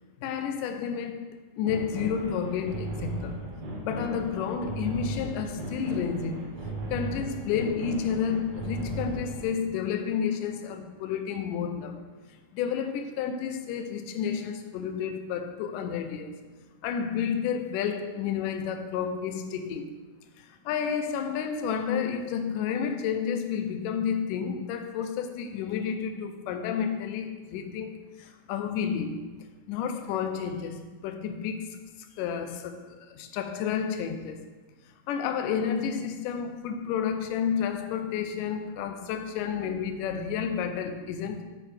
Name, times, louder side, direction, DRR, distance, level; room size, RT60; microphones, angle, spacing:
voice 1, 0.2-3.4 3.8-6.4 6.9-16.4 16.8-19.9 20.4-29.3 29.7-31.8 32.1-34.5 35.1-41.4, left 7 dB, 80° left, 2.0 m, -31 dB
sound 1, 1.7-9.5, right 1 dB, 75° right, 1.0 m, -36 dB
8.4 x 5.9 x 3.3 m
omnidirectional pair, 4.1 m